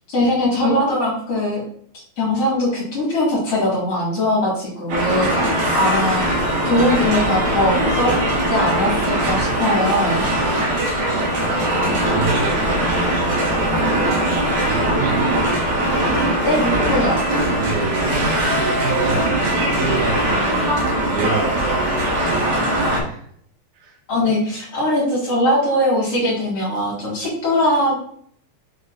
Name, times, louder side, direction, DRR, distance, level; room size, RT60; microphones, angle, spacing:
voice 1, 0.1-1.6 2.2-5.4 5.7-6.2 6.6-8.1 8.5-10.4 16.4-17.2 24.1-28.0, left 1 dB, 50° left, -6 dB, 2.0 m, -20 dB
sound 1, 4.9-23.0, right 1 dB, 55° right, 2.8 m, -20 dB
voice 2, 11.0-14.0 14.6-15.5 17.5-20.8 21.1-23.3 23.7-23.9, right 3 dB, 70° right, -7 dB, 3.8 m, -28 dB
8.1 x 5.1 x 2.5 m, 0.62 s
omnidirectional pair, 5.4 m